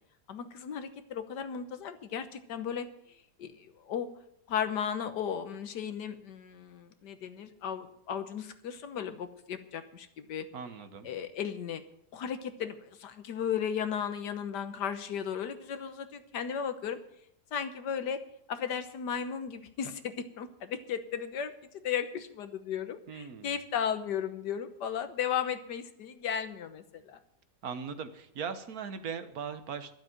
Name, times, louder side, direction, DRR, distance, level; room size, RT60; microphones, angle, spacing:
voice 1, 0.3-2.9 3.4-4.1 4.5-10.5 11.0-11.8 12.1-17.0 17.5-18.2 18.5-27.2, left 8 dB, 90° left, 10 dB, 1.7 m, -35 dB
voice 2, 10.5-11.1 23.1-23.6 27.6-29.9, right 6 dB, 65° right, 10 dB, 1.5 m, -39 dB
12.0 x 7.6 x 8.9 m, 0.72 s
omnidirectional pair, 1.7 m